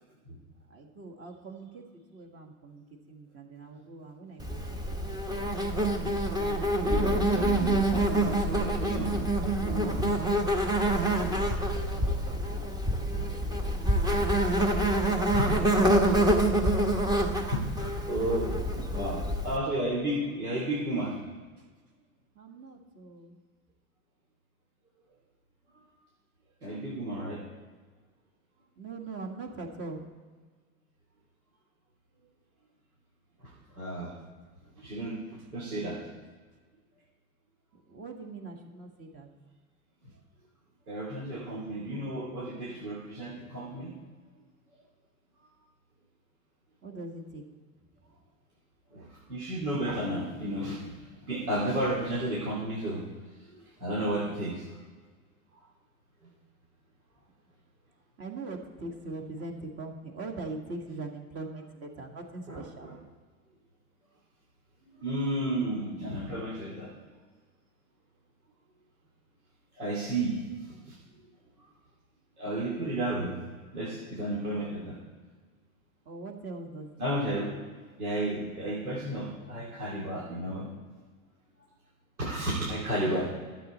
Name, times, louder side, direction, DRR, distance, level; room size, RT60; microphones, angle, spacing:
voice 1, 0.7-6.7 9.6-10.1 11.0-15.0 22.3-23.4 28.8-30.0 37.9-39.3 46.8-47.4 58.2-62.9 72.8-73.3 74.5-74.7 76.0-77.2, right 3 dB, 30° right, 2 dB, 1.8 m, -43 dB
Insect, 4.4-19.6, right 1 dB, 10° right, 1.0 m, -26 dB
voice 2, 6.8-9.2 9.6-10.2 15.3-16.2 17.1-17.2 17.5-18.6 18.9-21.1 26.6-27.4 33.8-34.1 34.8-35.2 35.5-36.0 40.9-43.9 48.9-50.9 51.3-53.0 53.4-53.5 53.8-54.7 62.5-62.9 64.9-66.9 69.8-70.4 70.9-71.0 72.4-73.3 73.7-75.0 77.0-77.5 78.0-80.7 82.2-83.3, right 1 dB, 80° right, -6 dB, 2.7 m, -32 dB
12.5 x 7.4 x 4.2 m, 1.5 s
hypercardioid pair, 95°, 43 cm